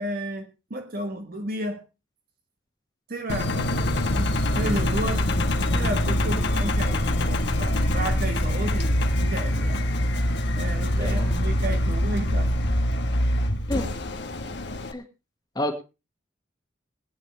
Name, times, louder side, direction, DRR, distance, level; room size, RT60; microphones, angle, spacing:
voice 1, 0.0-1.8 3.1-5.3 5.7-9.8 10.5-12.8, right 1 dB, 50° right, 1.4 m, -33 dB
Engine, 3.3-14.9, left 1 dB, 60° left, 1.5 m, -24 dB
voice 2, 11.0-11.5 13.7-13.9 14.9-15.0 15.6-15.8, left 1 dB, 20° left, 1.9 m, -29 dB
22.0 x 9.2 x 3.3 m
head